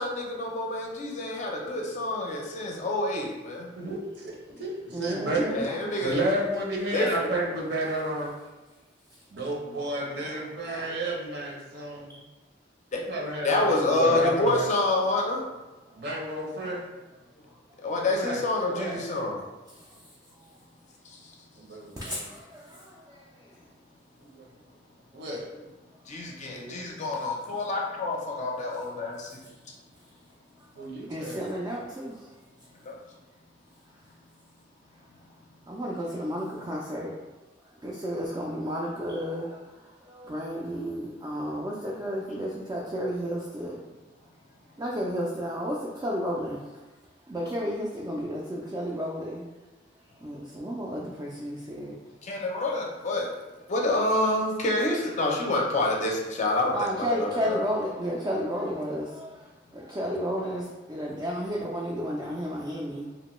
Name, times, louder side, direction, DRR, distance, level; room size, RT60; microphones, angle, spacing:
voice 1, 0.0-3.7 5.5-6.2 6.9-7.1 12.9-13.0 13.4-15.4 17.8-19.4 21.0-21.2 26.1-29.3 32.8-33.0 42.3-42.5 52.2-53.3 53.7-57.6, left 2 dB, 40° left, -1 dB, 0.5 m, -27 dB
voice 2, 3.8-5.5 6.0-8.4 9.3-12.3 13.1-14.7 16.0-16.8 18.0-19.1 21.6-22.2 24.2-24.4 25.1-25.5 26.5-26.8 30.8-31.4, right 1 dB, 60° right, -2 dB, 0.7 m, -31 dB
voice 3, 4.9-6.1 12.1-12.2 16.0-16.1 19.8-20.0 20.4-20.5 22.0-23.5 31.1-32.3 35.7-37.1 37.8-43.8 44.8-46.7 47.3-49.4 50.2-52.0 56.7-63.1, equal, 20° right, -4 dB, 0.3 m, -32 dB
2.9 x 2.1 x 3.0 m, 1.1 s
head